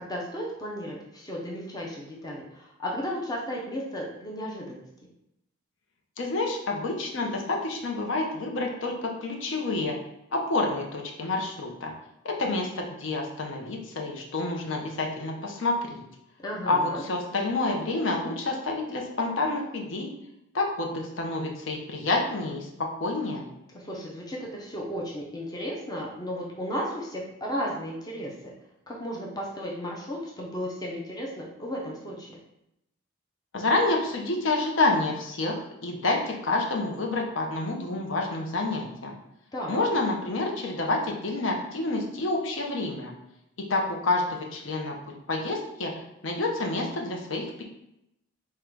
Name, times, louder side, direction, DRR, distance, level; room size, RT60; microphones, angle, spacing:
voice 1, 0.0-4.8 16.4-17.0 23.7-28.3 28.9-32.4 39.5-39.9, equal, 20° left, -3 dB, 0.5 m, -34 dB
voice 2, 6.2-10.0 10.3-11.9 12.2-16.0 16.7-20.1 20.5-23.5 33.5-39.1 39.7-43.1 43.7-45.0 45.3-47.6, left 2 dB, 70° left, 1 dB, 0.6 m, -28 dB
3.7 x 2.2 x 4.4 m, 0.84 s
head